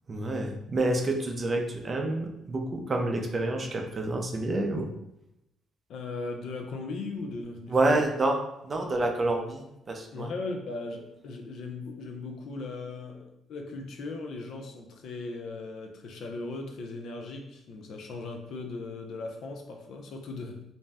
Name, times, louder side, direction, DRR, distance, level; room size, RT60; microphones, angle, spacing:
voice 1, 0.1-4.9 7.7-10.3, right 2 dB, 30° right, 2 dB, 0.5 m, -28 dB
voice 2, 5.9-8.0 8.7-8.9 10.1-20.6, left 3 dB, 65° left, 3 dB, 0.5 m, -38 dB
2.6 x 2.1 x 3.3 m, 0.84 s
cardioid pair, 115°, 0 cm